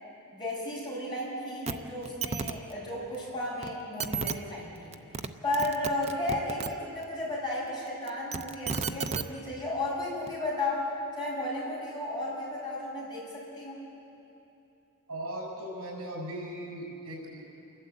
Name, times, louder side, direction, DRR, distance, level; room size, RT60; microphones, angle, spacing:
voice 1, 0.3-4.9 5.4-13.8, left 1 dB, 20° left, -5 dB, 6.2 m, -34 dB
sound 1, 1.7-1.8 2.0-2.5 3.6-3.7 4.0-4.3 4.9-5.3 5.5-6.7 8.1-9.2 10.3-10.4, right 5 dB, 30° right, 0.6 m, -32 dB
voice 2, 15.1-17.4, right 1 dB, 75° right, -1 dB, 6.4 m, -38 dB
28.5 x 12.0 x 8.3 m, 2.9 s
head